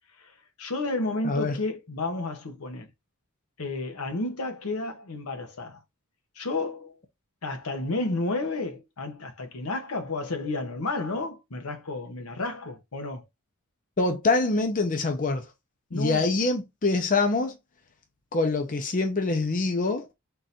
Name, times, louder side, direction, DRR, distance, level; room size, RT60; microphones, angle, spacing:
voice 1, 0.2-2.9 3.6-5.8 6.4-7.0 7.4-13.3 15.9-16.3, left 2 dB, 80° left, 0.9 m, -31 dB
voice 2, 14.0-15.5 15.9-17.5 18.3-20.0, left 3 dB, 40° left, 0.6 m, -25 dB
3.8 x 2.6 x 4.2 m
head